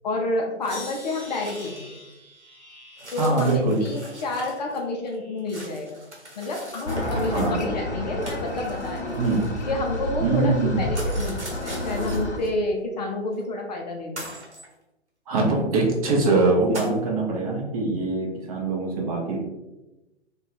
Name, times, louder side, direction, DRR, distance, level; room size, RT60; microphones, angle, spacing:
voice 1, 0.0-1.9 3.1-6.0 6.4-9.2 9.7-14.3, left 2 dB, 40° left, 1 dB, 0.5 m, -29 dB
sound 1, 0.6-1.8 2.1-2.2 3.0-4.8 5.1-7.7 8.2-9.9 10.9-12.5 13.3-13.4 14.2-14.7 15.4-15.5 15.8-16.0 16.7-17.0, right 1 dB, 85° right, 1.1 m, -40 dB
sound 2, 0.7-5.8 6.3-7.0 7.7-8.0, left 1 dB, 5° left, 0.9 m, -46 dB
voice 2, 3.2-3.8 7.3-7.5 9.2-9.4 10.2-10.8 15.3-19.4, right 3 dB, 35° right, -1 dB, 0.6 m, -23 dB
sound 3, 6.9-12.4, left 1 dB, 75° left, 0.7 m, -30 dB
2.4 x 2.2 x 3.1 m, 1.0 s
figure-of-eight pair, 120°, 34 cm